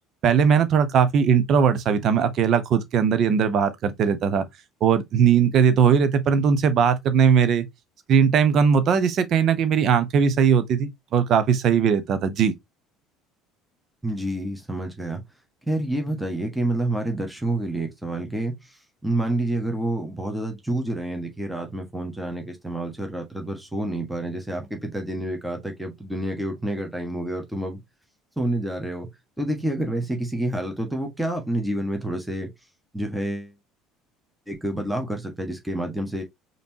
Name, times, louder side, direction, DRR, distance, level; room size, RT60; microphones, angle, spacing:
voice 1, 0.2-4.4 4.8-7.7 8.1-12.5, right 7 dB, 45° right, 0.8 m, -19 dB
voice 2, 14.0-15.2 15.6-27.8 28.4-29.1 29.4-32.5 32.9-33.5 34.5-36.2, right 1 dB, 5° right, 1.4 m, -28 dB
5.1 x 3.1 x 2.8 m
figure-of-eight pair, 60°, 0 cm